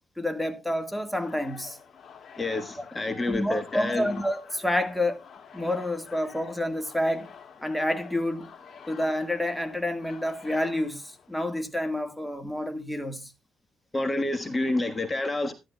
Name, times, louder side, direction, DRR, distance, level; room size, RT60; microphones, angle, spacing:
voice 1, 0.2-1.8 2.8-2.9 3.3-5.2 5.5-7.3 7.6-8.5 8.9-13.3, left 1 dB, ahead, 1.5 m, -29 dB
sound 1, 1.2-11.6, left 6 dB, 55° left, 2.2 m, -48 dB
voice 2, 2.4-4.2 13.9-15.5, left 2 dB, 20° left, 1.4 m, -28 dB
12.5 x 11.5 x 2.3 m
cardioid pair, 90°, 0 cm